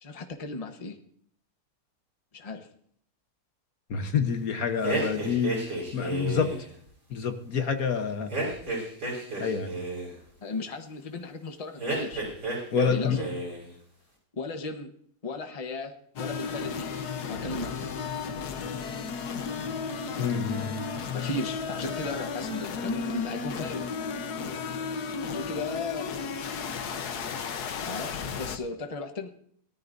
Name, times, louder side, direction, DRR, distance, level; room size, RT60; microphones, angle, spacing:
voice 1, 0.0-1.0 2.3-2.7 10.4-12.2 12.8-13.3 14.3-14.9 15.2-16.9 17.3-18.0 21.1-23.8 25.2-26.2 27.8-29.3, left 3 dB, 25° left, 5 dB, 1.1 m, -36 dB
voice 2, 3.9-6.5 7.1-8.3 9.4-9.8 12.7-13.2 20.2-20.8, left 6 dB, 65° left, 7 dB, 1.5 m, -27 dB
sound 1, 4.8-6.7 8.3-10.1 11.8-12.9 13.2-13.7, right 2 dB, 85° right, 6.0 m, -31 dB
sound 2, 16.2-28.6, left 5 dB, 80° left, 1.5 m, -34 dB
18.5 x 13.5 x 2.7 m, 0.63 s
omnidirectional pair, 1.7 m